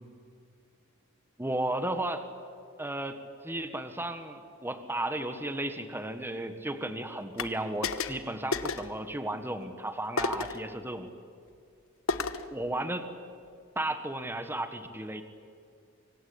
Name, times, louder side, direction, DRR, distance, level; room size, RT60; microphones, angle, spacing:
voice 1, 1.4-2.2 2.8-11.1 12.5-13.1 13.7-15.2, right 1 dB, 10° right, 8 dB, 1.5 m, -34 dB
sound 1, 7.4-7.5 7.8-8.2 8.5-8.9 10.2-10.6 12.1-12.5, left 4 dB, 85° left, 1.3 m, -31 dB
26.0 x 24.5 x 8.6 m, 2.3 s
head